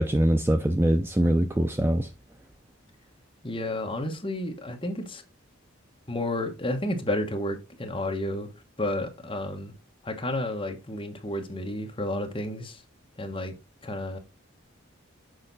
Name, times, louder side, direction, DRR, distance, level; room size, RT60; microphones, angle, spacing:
voice 1, 0.0-2.1, right 1 dB, 10° right, 0.4 m, -23 dB
voice 2, 3.4-5.2 6.1-8.5 8.8-9.7 10.0-12.8 13.2-13.5 13.8-14.2, left 1 dB, 25° left, 1.1 m, -31 dB
6.5 x 4.8 x 4.0 m
head